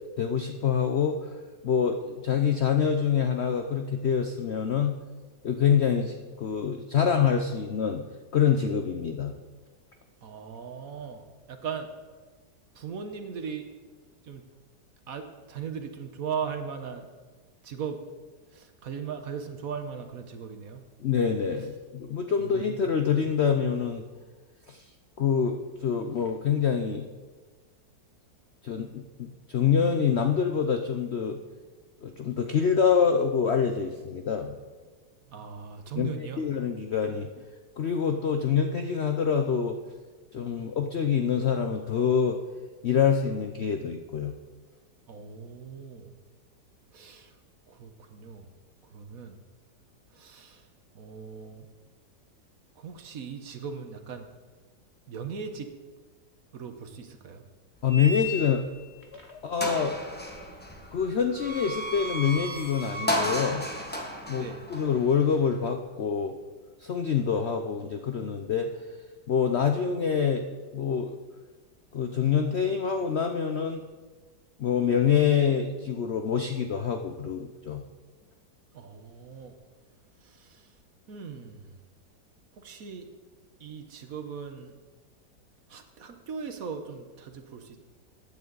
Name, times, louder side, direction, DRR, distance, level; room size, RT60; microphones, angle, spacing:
voice 1, 0.2-1.3 1.6-5.0 5.4-8.0 8.3-9.4 21.0-24.0 24.7-24.8 25.2-27.1 28.6-31.4 32.0-34.6 36.0-37.3 37.8-39.8 40.3-42.4 42.8-44.4 57.8-58.6 59.1-60.0 60.9-63.6 64.3-66.4 66.8-68.7 69.3-70.5 70.7-71.1 71.9-73.8 74.6-77.8, left 7 dB, 60° left, 5 dB, 0.6 m, -26 dB
voice 2, 10.2-11.2 11.5-11.9 12.7-13.7 14.2-14.4 15.1-17.1 17.6-18.0 18.5-20.8 22.4-22.9 35.3-36.4 40.5-40.7 45.1-46.2 46.9-47.3 47.7-48.5 48.9-49.4 50.1-50.7 50.9-51.7 52.8-54.3 55.1-55.7 56.5-57.4 64.3-64.6 78.7-79.5 80.2-80.7 81.1-81.8 82.6-83.1 83.6-84.7 85.7-87.8, right 6 dB, 60° right, 7 dB, 1.3 m, -38 dB
sound 1, 57.9-58.8 59.2-59.3 59.6-65.7, equal, 5° left, 1.2 m, -34 dB
15.0 x 9.3 x 4.0 m, 1.4 s
omnidirectional pair, 1.9 m